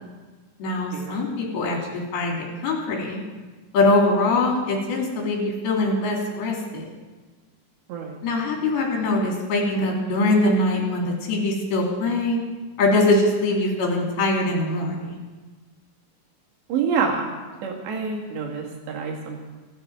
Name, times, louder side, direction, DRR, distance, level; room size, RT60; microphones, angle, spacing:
voice 1, 0.6-3.2 3.7-6.9 8.2-12.4 12.8-15.2, left 2 dB, 60° left, -1 dB, 4.7 m, -23 dB
voice 2, 16.7-17.3 17.6-19.4, right 5 dB, 70° right, 0 dB, 4.3 m, -27 dB
25.5 x 9.0 x 4.7 m, 1.3 s
omnidirectional pair, 5.3 m